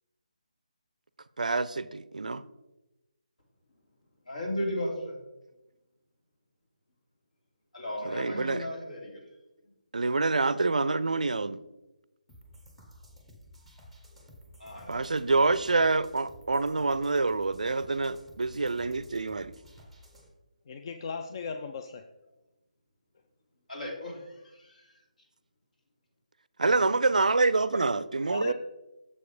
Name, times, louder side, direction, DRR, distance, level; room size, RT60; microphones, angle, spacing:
voice 1, 1.4-2.4 8.0-8.7 9.9-11.6 14.9-19.5 26.6-28.5, right 3 dB, 70° right, 0.4 m, -26 dB
voice 2, 4.3-5.2 7.7-9.2 14.6-15.1 23.7-24.9 27.8-27.9 28.2-28.3, left 1 dB, 65° left, 2.6 m, -36 dB
sound 1, 12.3-20.3, equal, ahead, 0.8 m, -53 dB
voice 3, 20.7-22.0 28.3-28.5, left 5 dB, 35° left, 0.4 m, -36 dB
7.0 x 4.7 x 5.0 m
figure-of-eight pair, 150°, 4 cm